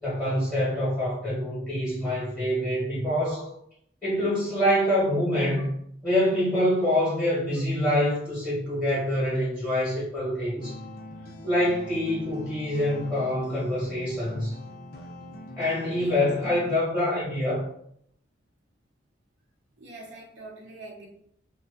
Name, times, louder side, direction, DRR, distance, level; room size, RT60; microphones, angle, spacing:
voice 1, 0.0-3.5 4.0-5.7 6.0-10.8 11.4-14.5 15.6-17.6, left 1 dB, 10° left, -11 dB, 1.0 m, -25 dB
sound 1, 10.6-16.8, equal, 55° left, 0.4 m, -42 dB
voice 2, 15.9-16.3 19.8-21.1, right 2 dB, 80° right, -3 dB, 0.7 m, -43 dB
2.4 x 2.3 x 2.3 m, 0.71 s
head